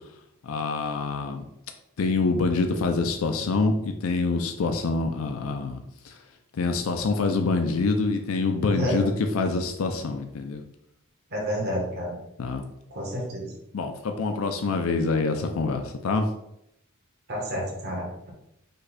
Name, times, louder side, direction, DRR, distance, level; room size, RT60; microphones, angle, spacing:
voice 1, 0.4-1.4 2.0-6.2 6.5-10.6 12.4-12.6 13.7-16.3, left 3 dB, 70° left, 6 dB, 0.4 m, -26 dB
voice 2, 8.7-9.1 11.3-12.2 12.9-13.5 17.3-18.3, equal, 50° right, -3 dB, 1.3 m, -29 dB
5.2 x 2.3 x 4.1 m, 0.80 s
head